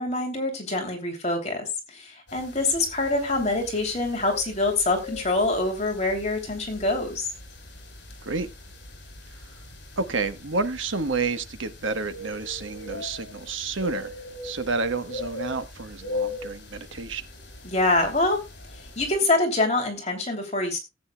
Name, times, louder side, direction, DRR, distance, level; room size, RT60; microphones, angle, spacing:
voice 1, 0.0-7.3 17.6-18.4 18.9-20.8, left 2 dB, 35° left, 2 dB, 3.0 m, -25 dB
sound 1, 2.3-19.2, left 3 dB, 60° left, 4.3 m, -40 dB
voice 2, 10.0-14.1 14.4-17.2, right 3 dB, 80° right, 10 dB, 1.2 m, -29 dB
17.5 x 8.8 x 2.3 m, 0.24 s
head